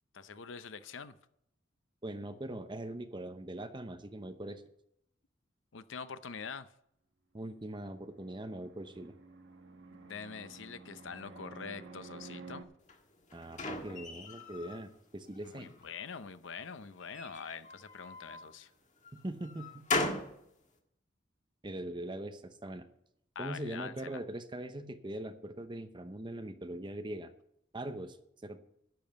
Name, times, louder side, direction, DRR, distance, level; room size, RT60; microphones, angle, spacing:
voice 1, 0.1-1.1 5.7-6.7 10.0-12.7 15.4-18.7 23.3-24.2, left 6 dB, 70° left, 0.7 m, -44 dB
voice 2, 2.0-4.6 7.3-9.1 13.3-15.7 19.1-19.7 21.6-22.8 23.4-27.3 27.7-28.2 28.4-28.6, right 1 dB, 25° right, 0.8 m, -41 dB
Fixed-wing aircraft airplane, 7.7-12.6, right 3 dB, 65° right, 1.2 m, -51 dB
sound 1, 12.9-14.8 15.3-16.0 17.0-18.5 19.0-20.4, left 2 dB, 40° left, 1.6 m, -38 dB
10.5 x 7.1 x 8.0 m
head